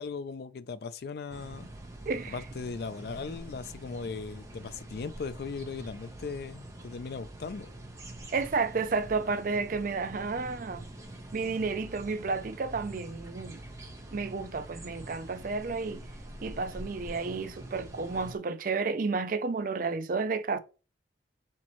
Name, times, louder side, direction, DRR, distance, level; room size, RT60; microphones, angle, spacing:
voice 1, 0.0-1.7 2.3-7.7, left 4 dB, 55° left, 0.4 m, -38 dB
sound 1, 1.3-18.4, right 1 dB, 15° right, 0.9 m, -45 dB
voice 2, 2.1-2.4 8.1-10.9 11.3-13.6 14.1-16.0 16.4-20.6, right 4 dB, 45° right, 0.4 m, -31 dB
4.4 x 4.0 x 3.0 m
head